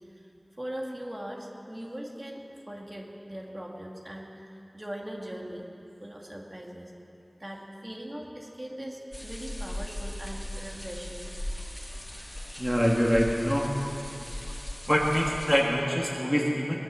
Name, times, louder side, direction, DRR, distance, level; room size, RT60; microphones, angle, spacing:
voice 1, 0.6-4.3 4.7-5.7 6.0-6.9 7.4-11.3, equal, 30° right, -1 dB, 2.1 m, -40 dB
sound 1, 9.1-15.6, left 1 dB, 15° left, 3.4 m, -38 dB
voice 2, 12.6-13.7 14.2-14.6 14.9-16.8, equal, 5° right, -3 dB, 1.6 m, -25 dB
18.5 x 9.0 x 7.5 m, 2.8 s
wide cardioid pair, 50°, 0 cm